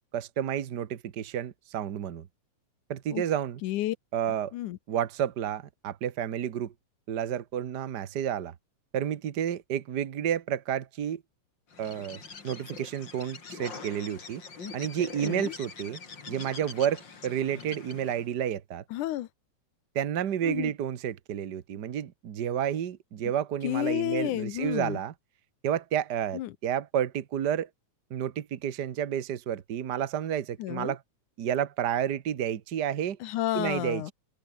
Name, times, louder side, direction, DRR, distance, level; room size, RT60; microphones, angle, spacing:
voice 1, 0.0-2.3 2.9-3.6 4.1-4.5 4.9-6.7 7.1-8.5 8.9-11.2 11.8-14.4 14.7-16.0 16.3-18.8 19.9-25.1 25.6-27.7 28.1-31.0 31.4-33.2 33.5-34.1, right 9 dB, 60° right, 1.1 m, -30 dB
voice 2, 3.6-4.0 4.5-4.8 15.2-15.5 18.9-19.3 20.4-20.7 23.6-25.0 26.3-26.5 30.6-30.9 33.2-34.1, left 14 dB, 85° left, 2.5 m, -31 dB
Bird, 11.7-18.3, left 5 dB, 40° left, 3.3 m, -44 dB
open air
omnidirectional pair, 3.5 m